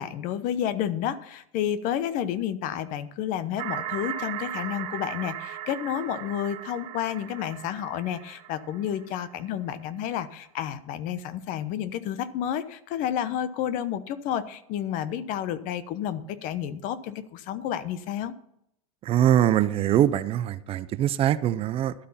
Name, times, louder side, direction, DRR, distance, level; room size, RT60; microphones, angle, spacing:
voice 1, 0.0-18.3, left 10 dB, 45° left, 14 dB, 1.0 m, -30 dB
sound 1, 3.6-9.3, right 12 dB, 65° right, 1.8 m, -37 dB
voice 2, 19.0-21.9, right 11 dB, 30° right, 15 dB, 0.5 m, -23 dB
12.0 x 8.4 x 5.6 m, 0.77 s
supercardioid pair, 130°, 18 cm